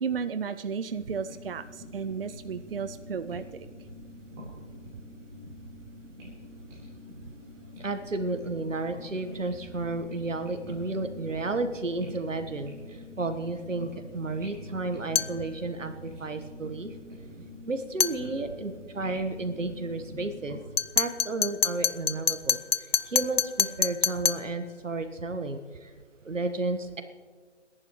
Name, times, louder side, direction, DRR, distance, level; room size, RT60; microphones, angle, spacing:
voice 1, 0.0-3.7, right 6 dB, 50° right, 12 dB, 0.4 m, -33 dB
sound 1, 0.9-20.6, left 1 dB, 15° right, 3.8 m, -45 dB
voice 2, 7.8-12.7 13.2-16.9 17.7-20.6 20.9-25.9 26.2-27.0, right 2 dB, 90° right, 8 dB, 1.5 m, -32 dB
sound 2, 15.1-15.4 18.0-18.2 20.8-24.5, left 7 dB, 55° left, 0.6 m, -26 dB
29.0 x 11.0 x 3.1 m, 1.5 s
figure-of-eight pair, 155°, 37 cm